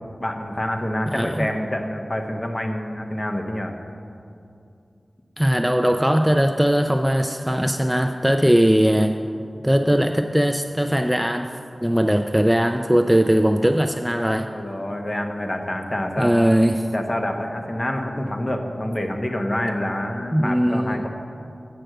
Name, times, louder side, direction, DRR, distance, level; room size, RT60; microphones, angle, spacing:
voice 1, 0.2-3.7 14.5-16.6 16.9-21.1, left 1 dB, 35° left, 3 dB, 1.0 m, -27 dB
voice 2, 1.1-1.5 5.4-9.2 9.6-11.5 11.8-14.5 16.2-16.9 20.3-21.1, equal, 5° right, 6 dB, 0.4 m, -19 dB
7.8 x 6.4 x 7.6 m, 2.6 s
wide cardioid pair, 60°, 0 cm